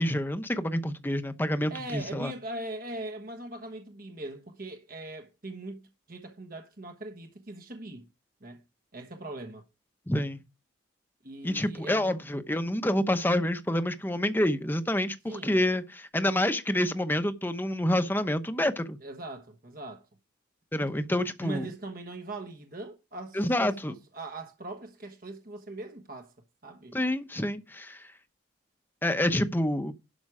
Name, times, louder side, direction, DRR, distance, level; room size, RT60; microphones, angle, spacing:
voice 1, 0.0-2.3 10.1-10.4 11.4-19.0 20.7-21.7 23.3-23.9 26.9-28.0 29.0-29.9, left 1 dB, 10° left, 0.9 m, -28 dB
voice 2, 1.7-8.1 8.4-8.6 8.9-9.6 11.2-12.2 15.3-15.6 19.0-20.1 20.8-20.9 21.4-26.3 26.6-27.0, right 2 dB, 45° right, 1.2 m, -40 dB
12.0 x 6.0 x 4.9 m
head